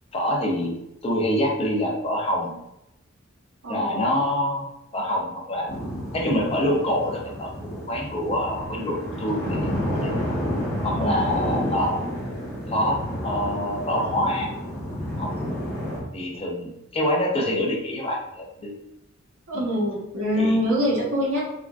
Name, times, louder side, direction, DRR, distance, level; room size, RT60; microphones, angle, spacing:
voice 1, 0.1-0.7 1.0-2.6 3.7-4.7 4.9-5.7 6.1-10.1 10.8-12.0 12.7-14.5 15.2-15.5 16.1-18.8 19.5-19.7 20.4-20.9, left 1 dB, 30° left, -1 dB, 0.6 m, -26 dB
voice 2, 3.6-4.0 10.9-11.2 19.5-21.4, equal, 80° right, -3 dB, 1.0 m, -24 dB
sound 1, 5.7-16.0, equal, 10° left, 1.0 m, -30 dB
3.4 x 2.4 x 2.4 m, 0.88 s
head